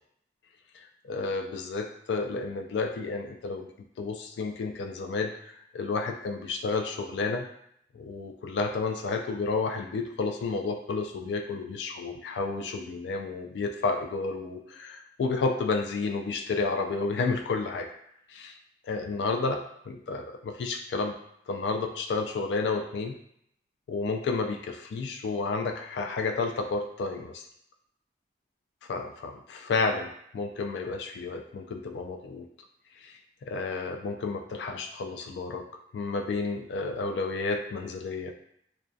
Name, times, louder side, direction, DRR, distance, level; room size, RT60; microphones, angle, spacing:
voice 1, 0.7-3.7 4.0-7.5 7.9-17.9 18.3-18.5 18.8-21.1 21.5-23.2 23.9-27.4 28.9-32.5 33.0-38.3, left 4 dB, 80° left, 5 dB, 0.3 m, -31 dB
2.5 x 2.2 x 2.3 m, 0.71 s
head